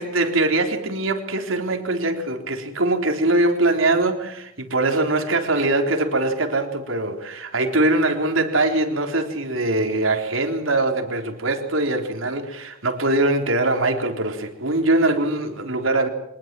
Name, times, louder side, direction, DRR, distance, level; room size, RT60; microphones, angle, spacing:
voice 1, 0.0-16.1, right 2 dB, 90° right, 3.9 m, -22 dB
25.0 x 20.5 x 7.7 m
head